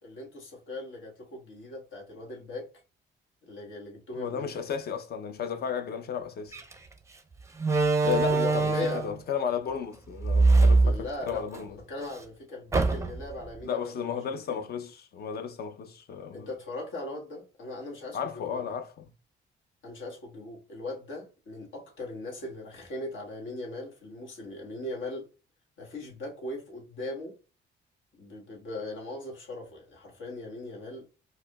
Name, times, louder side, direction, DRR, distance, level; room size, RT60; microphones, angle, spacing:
voice 1, 0.0-2.7 3.4-4.5 8.3-9.0 10.8-11.5 11.7-14.4 16.3-18.6 19.8-25.3 25.8-27.3 28.1-31.0, left 2 dB, 75° left, 1.4 m, -39 dB
voice 2, 4.2-6.6 8.0-11.8 13.6-16.5 18.1-19.1, left 7 dB, 55° left, 0.6 m, -34 dB
Slam, 6.5-6.7 7.6-9.2 10.2-11.6 12.0-12.1 12.7-13.3, right 3 dB, 15° right, 0.5 m, -23 dB
4.7 x 2.0 x 2.2 m
cardioid pair, 90°, 20 cm